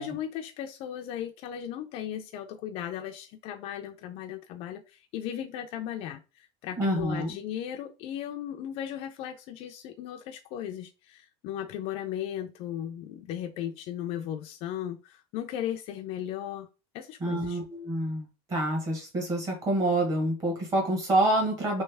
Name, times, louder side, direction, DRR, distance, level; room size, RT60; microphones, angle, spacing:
voice 1, 0.0-16.7 16.9-17.6, left 10 dB, 40° left, 0.4 m, -36 dB
voice 2, 6.8-7.4 17.2-21.8, right 1 dB, 25° right, 1.2 m, -27 dB
3.2 x 3.1 x 3.4 m
cardioid pair, 170°, 15 cm